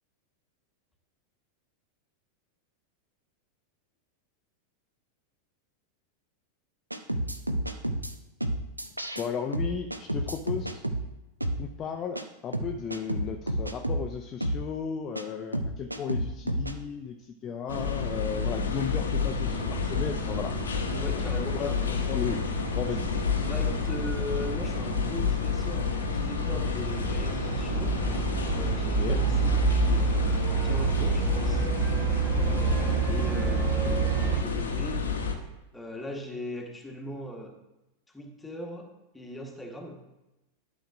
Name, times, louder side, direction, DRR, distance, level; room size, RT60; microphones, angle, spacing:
sound 1, 6.9-8.1 8.4-9.3 9.5-11.0 11.4-11.6 12.2-12.3 12.5-14.1 14.4-14.6 15.2-15.3 15.5-16.7, right 1 dB, 85° right, 0.5 m, -30 dB
voice 1, 9.2-10.8 11.6-20.5 21.5-21.7 22.1-23.1 28.9-29.2, left 7 dB, 30° left, 5 dB, 0.5 m, -35 dB
sound 2, 17.7-35.4, left 5 dB, 70° left, 0.8 m, -29 dB
sound 3, 19.4-34.4, right 8 dB, 30° right, 0.9 m, -30 dB
voice 2, 20.9-22.0 23.3-30.3 30.6-31.6 32.4-35.3 35.7-37.6 38.1-40.0, equal, 10° left, 2 dB, 1.2 m, -40 dB
11.5 x 6.2 x 2.5 m, 0.96 s
figure-of-eight pair, 90°, 0 cm